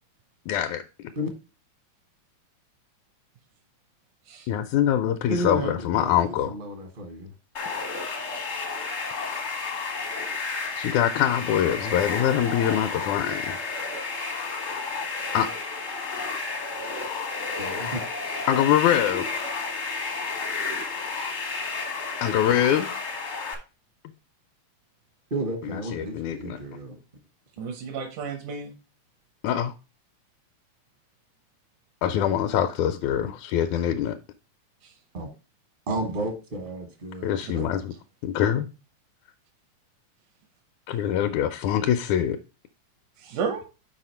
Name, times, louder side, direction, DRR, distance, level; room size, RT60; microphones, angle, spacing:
voice 1, 0.5-0.8 4.5-6.5 10.8-13.6 15.3-15.5 18.5-19.3 22.2-22.9 25.7-26.6 29.4-29.7 32.0-34.2 37.2-37.9 38.2-38.7 40.9-42.4, left 10 dB, 85° left, 2.0 m, -24 dB
voice 2, 5.3-7.3 17.6-18.0 25.3-27.0 33.2-33.3 35.1-35.3 35.9-37.3, right 1 dB, 55° right, 0.6 m, -32 dB
sound 1, 7.5-23.5, left 4 dB, 55° left, 0.7 m, -31 dB
voice 3, 27.6-28.7 34.8-34.9 37.4-37.7 43.2-43.6, right 5 dB, 85° right, 2.5 m, -33 dB
6.2 x 4.9 x 4.2 m
omnidirectional pair, 3.4 m